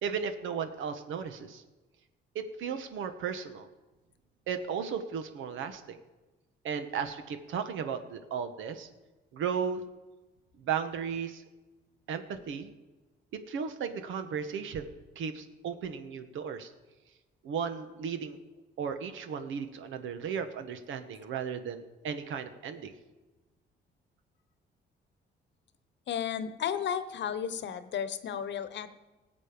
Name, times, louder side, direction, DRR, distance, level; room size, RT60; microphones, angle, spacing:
voice 1, 0.0-1.6 2.3-3.7 4.5-6.0 6.6-8.9 9.3-9.8 10.6-11.4 12.1-12.7 13.3-16.7 17.4-18.4 18.8-22.9, right 7 dB, 80° right, 8 dB, 1.3 m, -35 dB
voice 2, 26.1-28.9, left 8 dB, 65° left, 12 dB, 1.0 m, -33 dB
19.0 x 7.7 x 5.2 m, 1.2 s
cardioid pair, 90°, 20 cm